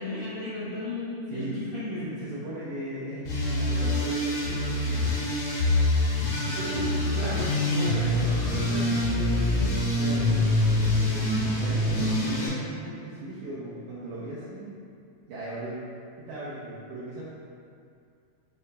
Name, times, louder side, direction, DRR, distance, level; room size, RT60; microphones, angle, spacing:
voice 1, 0.0-2.0 6.5-9.6, left 1 dB, 85° left, -13 dB, 1.2 m, -35 dB
voice 2, 1.3-5.1 6.5-8.1 8.6-8.9 9.9-14.8 15.3-15.9 16.2-17.2, right 1 dB, 80° right, -9 dB, 1.8 m, -38 dB
sound 1, 3.2-12.5, left 1 dB, 65° left, 1.5 m, -25 dB
8.2 x 2.8 x 2.2 m, 2.4 s
omnidirectional pair, 4.1 m